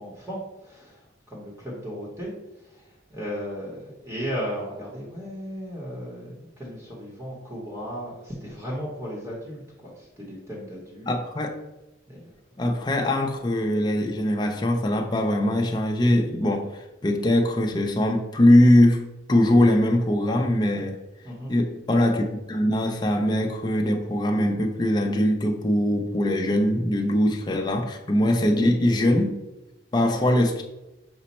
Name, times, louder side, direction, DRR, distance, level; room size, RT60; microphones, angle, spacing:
voice 1, 0.0-11.1 12.1-12.3 21.2-21.5 28.2-28.4 30.0-30.1, equal, 15° right, -4 dB, 0.8 m, -36 dB
voice 2, 11.1-11.5 12.6-21.0 21.5-29.3 29.9-30.6, left 1 dB, 20° left, 3 dB, 0.4 m, -22 dB
5.1 x 2.1 x 4.1 m, 1.0 s
head